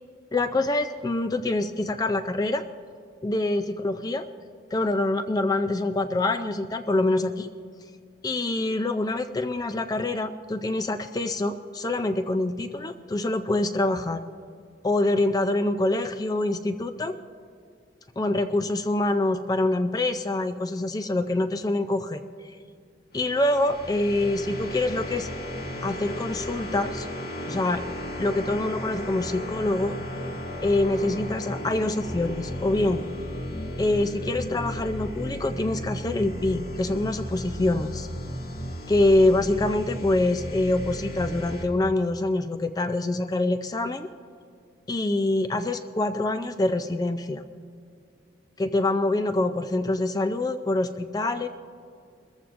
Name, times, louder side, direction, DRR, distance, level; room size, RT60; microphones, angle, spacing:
voice 1, 0.3-2.6 3.2-4.3 4.7-7.5 8.2-14.2 14.8-17.2 18.2-22.2 23.1-25.3 25.8-27.1 27.5-27.8 28.2-30.0 30.6-33.0 33.8-38.1 38.9-44.1 44.9-47.4 48.6-51.5, left 2 dB, 20° left, 8 dB, 0.4 m, -25 dB
sound 1, 23.1-41.7, equal, 55° left, 1.9 m, -35 dB
22.0 x 14.5 x 2.6 m, 2.3 s
head